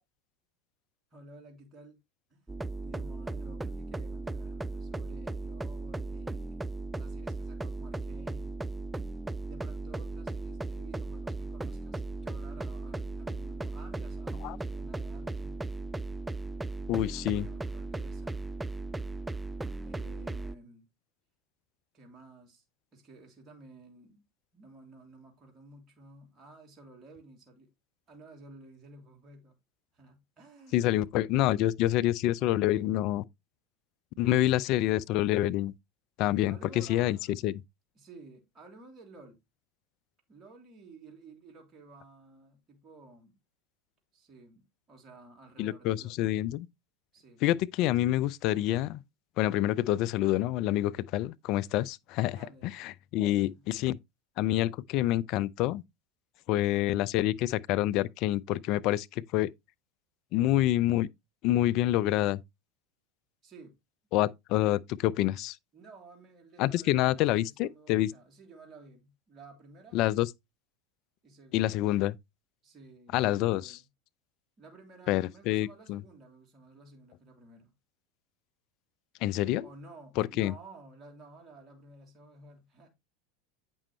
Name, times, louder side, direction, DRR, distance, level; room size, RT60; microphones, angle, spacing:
voice 1, 1.1-2.0 2.3-2.4 2.8-8.6 9.4-15.6 16.9-18.4 19.8-20.9 21.9-22.6 22.9-24.2 24.5-27.7 28.1-29.5 29.9-31.0 36.5-37.3 37.9-39.4 40.3-43.3 44.1-46.2 47.1-47.4 52.3-52.7 53.2-53.7 63.4-63.7 65.7-70.0 71.2-71.9 72.6-73.8 74.6-77.7 79.6-82.9, right 2 dB, 30° right, 3.2 m, -53 dB
sound 1, 2.5-20.5, right 2 dB, 10° right, 0.4 m, -37 dB
voice 2, 16.9-17.5 30.7-33.2 34.2-35.7 36.2-37.2 37.4-37.5 45.6-46.7 47.4-49.0 49.4-52.4 52.8-54.0 54.4-55.8 56.5-59.5 60.3-61.1 61.4-62.4 64.1-65.6 66.6-68.1 69.9-70.3 71.5-72.1 73.1-73.7 75.1-76.0 79.2-79.6 80.2-80.5, left 14 dB, 50° left, 0.5 m, -27 dB
8.7 x 6.2 x 3.1 m
hypercardioid pair, 85°, 0 cm